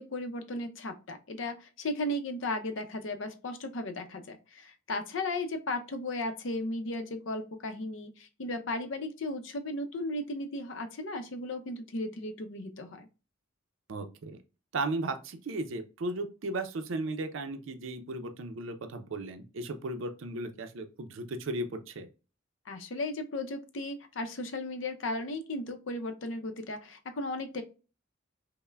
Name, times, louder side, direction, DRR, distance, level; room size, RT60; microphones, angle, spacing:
voice 1, 0.0-13.1 22.7-27.6, left 2 dB, 70° left, 8 dB, 0.6 m, -35 dB
voice 2, 13.9-14.4 14.7-22.1, right 2 dB, 75° right, 7 dB, 0.5 m, -35 dB
5.4 x 2.1 x 2.2 m, 0.33 s
head